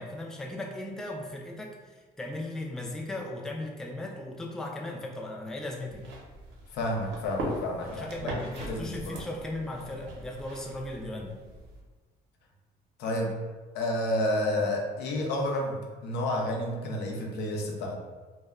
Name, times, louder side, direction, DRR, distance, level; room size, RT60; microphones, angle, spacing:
voice 1, 0.0-6.1 7.9-11.4, left 1 dB, 5° left, 0 dB, 0.3 m, -37 dB
sound 1, 5.9-11.8, right 1 dB, 85° right, 0.7 m, -40 dB
voice 2, 6.7-8.3 8.7-9.2 13.0-13.3 13.7-17.9, left 1 dB, 80° left, 1 dB, 0.5 m, -30 dB
2.1 x 2.1 x 3.5 m, 1.3 s
cardioid pair, 110°, 17 cm